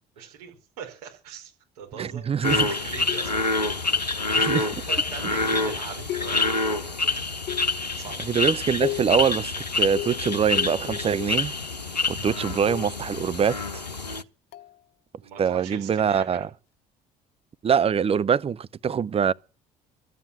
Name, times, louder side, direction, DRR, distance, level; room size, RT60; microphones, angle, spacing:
voice 1, 0.2-3.8 4.3-7.0 7.8-8.2 12.2-12.3 15.2-16.5, right 7 dB, 70° right, 5.2 m, -41 dB
voice 2, 2.0-2.7 4.4-4.7 8.3-11.6 12.1-13.8 15.4-16.5 17.6-19.3, right 7 dB, 30° right, 0.7 m, -24 dB
sound 1, 2.4-14.2, left 3 dB, 90° left, 0.7 m, -27 dB
sound 2, 3.1-3.6 4.9-5.2 6.1-6.7 7.5-8.0 8.8-9.3 9.9-11.6 12.7-13.1 14.5-14.8, left 15 dB, 55° left, 0.9 m, -35 dB
13.5 x 9.0 x 8.9 m
figure-of-eight pair, 55°, 21 cm